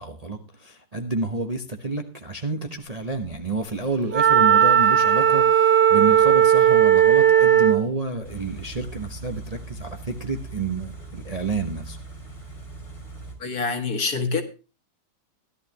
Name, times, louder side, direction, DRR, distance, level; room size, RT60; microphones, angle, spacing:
voice 1, 0.0-12.0, right 3 dB, 30° right, 0.9 m, -29 dB
Wind instrument woodwind instrument, 4.1-7.9, right 9 dB, 70° right, 1.6 m, -16 dB
Car / Idling, 8.2-13.4, right 3 dB, 15° left, 3.3 m, -40 dB
voice 2, 13.4-14.4, left 4 dB, 60° left, 2.4 m, -26 dB
16.5 x 11.5 x 2.9 m
omnidirectional pair, 1.9 m